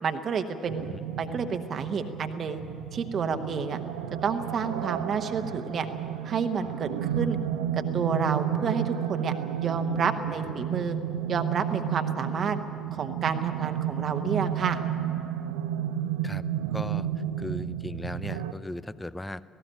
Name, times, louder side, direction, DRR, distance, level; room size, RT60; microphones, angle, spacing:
voice 1, 0.0-0.9 1.2-2.6 2.9-3.8 4.2-5.9 6.2-7.4 7.8-9.3 9.6-11.0 11.3-12.6 12.9-14.8, right 6 dB, 40° right, 7 dB, 1.1 m, -29 dB
sound 1, 0.7-18.5, right 10 dB, 65° right, 0.6 m, -32 dB
voice 2, 16.7-17.1 17.4-19.4, left 1 dB, 10° left, 17 dB, 0.5 m, -37 dB
18.5 x 16.5 x 9.1 m, 2.6 s
figure-of-eight pair, 50°, 0 cm